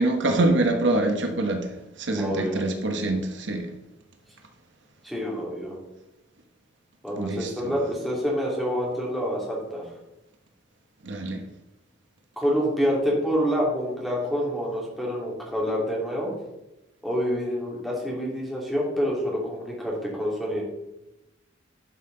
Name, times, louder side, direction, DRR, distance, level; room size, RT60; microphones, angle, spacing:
voice 1, 0.0-3.7 7.2-7.7 11.0-11.4, right 2 dB, 70° right, 4 dB, 1.1 m, -25 dB
voice 2, 2.2-2.6 5.0-5.8 7.0-9.8 12.4-16.3 17.0-20.6, equal, ahead, -4 dB, 2.7 m, -27 dB
12.0 x 5.6 x 3.9 m, 0.95 s
head